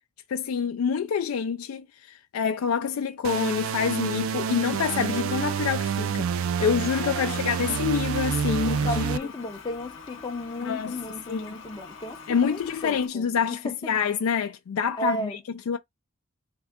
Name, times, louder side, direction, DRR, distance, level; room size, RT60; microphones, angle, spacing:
voice 1, 0.3-9.1 10.6-11.0 11.3-11.6 12.3-15.4 15.7-15.8, left 6 dB, 85° left, 0.4 m, -27 dB
sound 1, 3.2-9.2, right 7 dB, 70° right, 0.3 m, -28 dB
voice 2, 7.0-7.4 8.7-13.8 15.0-15.4, left 1 dB, 20° left, 0.5 m, -34 dB
Toilet flush, 7.3-13.1, left 5 dB, 60° left, 0.8 m, -44 dB
3.5 x 2.2 x 3.6 m
head